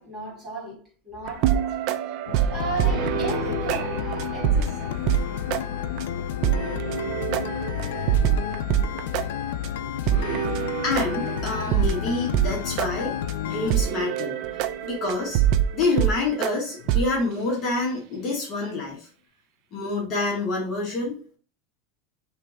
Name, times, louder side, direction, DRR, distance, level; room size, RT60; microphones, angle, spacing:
voice 1, 0.0-1.8 2.2-5.1 6.6-7.1 8.6-9.3, right 2 dB, 15° right, 2.1 m, -36 dB
sound 1, 1.3-5.2 5.5-5.6 6.0-6.1 6.4-9.2 9.6-9.7 10.1-12.5 12.8-12.9 13.3-13.4 13.7-16.5 16.9-17.1, right 10 dB, 50° right, 0.3 m, -25 dB
sound 2, 2.3-16.8 17.2-17.3, left 8 dB, 70° left, 0.8 m, -40 dB
sound 3, 2.5-13.7, left 10 dB, 90° left, 0.4 m, -31 dB
voice 2, 10.8-13.1 13.4-14.4 14.8-15.4 15.7-19.1 19.7-21.2, left 3 dB, 35° left, 1.2 m, -27 dB
3.3 x 3.1 x 4.8 m
supercardioid pair, 160°, 0 cm